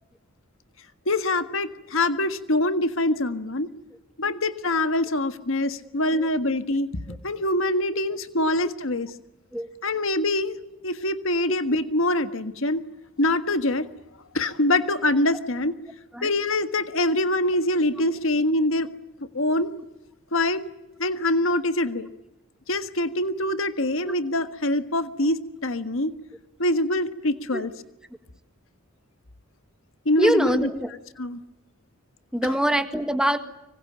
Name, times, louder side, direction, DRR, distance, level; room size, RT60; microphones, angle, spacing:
voice 1, 1.1-3.7 4.2-9.1 9.8-10.6 10.8-12.8 13.2-13.9 14.3-15.7 16.2-18.9 19.3-19.7 20.3-20.6 21.0-22.1 22.7-26.1 26.6-27.7 30.0-30.7 31.2-31.4, left 1 dB, 65° left, 10 dB, 1.6 m, -24 dB
voice 2, 30.2-30.9 32.3-33.4, equal, 5° right, 8 dB, 1.6 m, -24 dB
25.5 x 24.0 x 8.9 m, 0.93 s
head